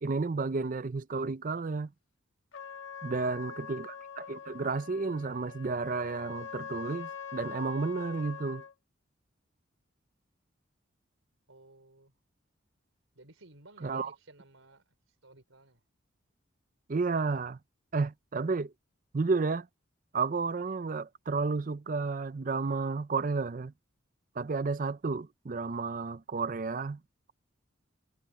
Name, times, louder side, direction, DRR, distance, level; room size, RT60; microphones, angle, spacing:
voice 1, 0.0-1.9 3.0-8.6 13.8-14.1 16.9-17.6 17.9-18.7 19.1-19.7 20.1-23.7 24.4-27.0, right 4 dB, 40° right, 0.5 m, -32 dB
Trumpet, 2.5-8.7, left 7 dB, 80° left, 1.3 m, -44 dB
voice 2, 3.0-3.7 11.5-12.1 13.1-15.8, right 2 dB, 85° right, 4.2 m, -56 dB
head